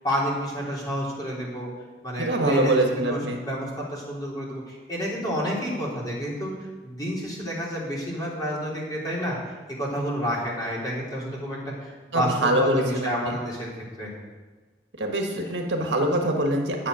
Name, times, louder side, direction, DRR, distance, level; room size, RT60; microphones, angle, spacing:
voice 1, 0.0-1.7 2.0-6.5 6.8-9.4 9.8-13.7 14.0-14.1 15.4-15.5, equal, 20° left, -5 dB, 3.5 m, -29 dB
voice 2, 2.2-3.4 12.1-13.4 15.0-16.9, right 1 dB, 70° right, 2 dB, 1.6 m, -24 dB
11.5 x 8.3 x 6.4 m, 1.3 s
head